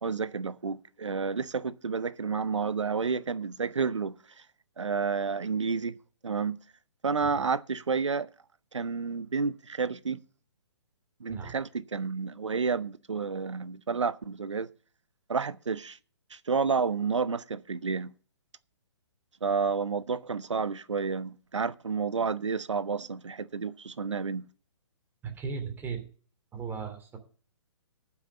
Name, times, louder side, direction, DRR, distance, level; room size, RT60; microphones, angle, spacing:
voice 1, 0.0-4.1 4.8-6.0 6.2-6.6 7.0-8.3 8.7-10.2 11.2-14.7 15.3-16.0 16.3-18.1 19.4-24.5, right 5 dB, 90° right, 0.7 m, -30 dB
voice 2, 25.2-26.0 26.5-27.2, right 5 dB, 15° right, 2.7 m, -36 dB
11.5 x 5.8 x 8.0 m
hypercardioid pair, 135°, 15 cm